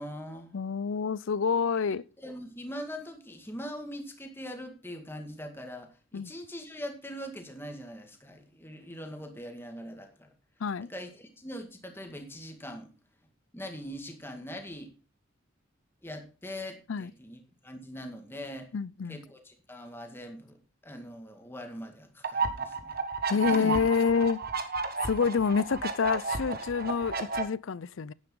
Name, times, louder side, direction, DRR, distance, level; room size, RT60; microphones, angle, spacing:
voice 1, 0.0-0.6 2.2-10.3 10.8-12.9 13.5-14.9 16.0-18.7 19.1-20.6 20.8-23.0 23.5-23.8, equal, 10° left, 2.0 m, -42 dB
voice 2, 0.5-2.0 6.1-6.3 10.6-10.9 16.9-17.1 18.7-19.2 23.3-24.4 25.0-28.1, left 6 dB, 70° left, 0.5 m, -27 dB
sound 1, 22.2-27.4, right 4 dB, 45° right, 1.5 m, -32 dB
10.5 x 10.5 x 3.8 m
head